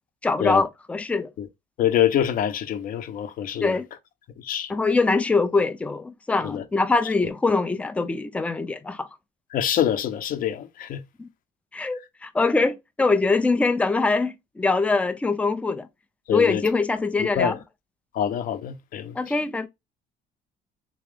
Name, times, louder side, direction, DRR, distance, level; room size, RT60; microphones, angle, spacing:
voice 1, 0.2-1.3 3.6-3.9 4.7-9.1 11.2-11.3 11.7-15.9 16.3-17.6 19.2-19.7, left 3 dB, 5° left, 0.4 m, -23 dB
voice 2, 1.8-3.8 4.4-4.7 6.4-6.6 9.5-11.0 16.3-16.6 17.2-17.6 18.1-19.2, left 10 dB, 55° left, 0.8 m, -25 dB
3.6 x 3.0 x 3.3 m
cardioid pair, 125°, 18 cm